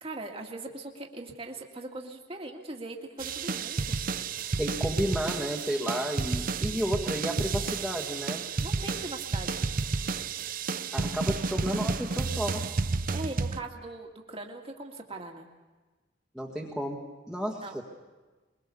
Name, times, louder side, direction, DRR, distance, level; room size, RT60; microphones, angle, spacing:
voice 1, 0.0-4.0 8.6-9.6 13.1-15.5 17.6-17.8, right 2 dB, 30° right, 2 dB, 2.0 m, -40 dB
sound 1, 3.2-13.6, right 4 dB, 45° right, 0.6 m, -31 dB
voice 2, 4.6-8.4 10.9-12.8 16.3-17.8, equal, ahead, -3 dB, 1.7 m, -32 dB
23.0 x 22.5 x 7.0 m, 1.3 s
head